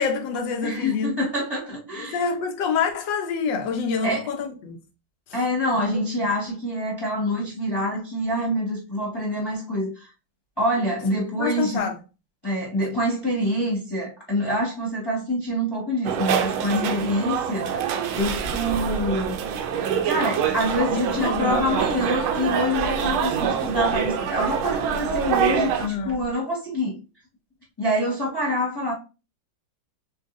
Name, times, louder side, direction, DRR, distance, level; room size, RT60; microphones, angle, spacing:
voice 1, 0.0-1.1 2.0-4.8 5.8-6.0 11.3-11.9 16.6-16.9 20.9-21.9 25.8-26.3, left 5 dB, 65° left, 1.5 m, -27 dB
voice 2, 0.6-2.2 4.0-4.3 5.3-10.1 10.6-11.8 12.4-17.8 18.1-19.4 20.0-27.0 27.8-28.9, equal, 15° left, 1.3 m, -26 dB
sound 1, 16.0-25.9, right 8 dB, 85° right, 1.5 m, -25 dB
sound 2, 18.2-26.3, right 3 dB, 65° right, 3.4 m, -38 dB
7.4 x 2.7 x 2.6 m
omnidirectional pair, 2.2 m